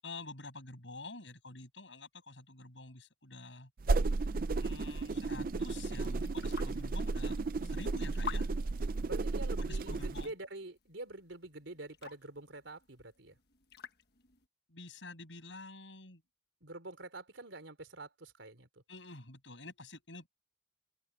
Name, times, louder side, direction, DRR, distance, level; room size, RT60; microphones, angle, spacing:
voice 1, 0.0-3.7 4.6-8.5 9.6-10.3 14.7-16.2 18.9-20.3, left 3 dB, 75° left, 7.3 m, -48 dB
sound 1, 3.8-10.3, right 3 dB, 50° right, 0.5 m, -33 dB
sound 2, 5.9-14.5, left 6 dB, 60° left, 1.5 m, -51 dB
voice 2, 9.1-13.4 16.6-18.8, right 2 dB, 85° right, 3.7 m, -47 dB
open air
head